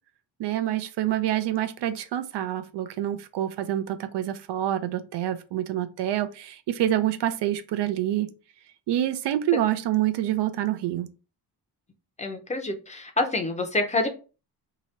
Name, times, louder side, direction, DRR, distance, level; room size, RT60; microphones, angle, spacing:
voice 1, 0.4-8.3 8.9-11.1, right 12 dB, 80° right, 0.6 m, -27 dB
voice 2, 12.2-14.1, left 2 dB, 15° left, 0.6 m, -27 dB
2.9 x 2.8 x 4.4 m
wide cardioid pair, 150°, 41 cm